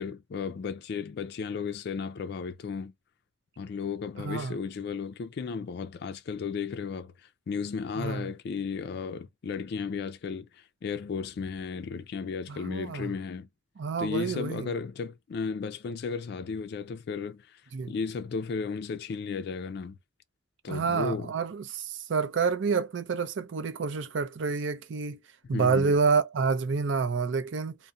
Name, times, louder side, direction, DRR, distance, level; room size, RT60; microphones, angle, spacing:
voice 1, 0.0-2.9 3.6-13.5 14.0-17.6 17.9-20.0 20.6-21.3 25.5-25.9, left 5 dB, 60° left, 0.3 m, -34 dB
voice 2, 4.2-4.6 8.0-8.3 12.5-13.1 13.8-14.7 17.7-17.9 20.7-25.2 25.5-27.8, right 5 dB, 75° right, 0.5 m, -28 dB
2.3 x 2.0 x 2.5 m
head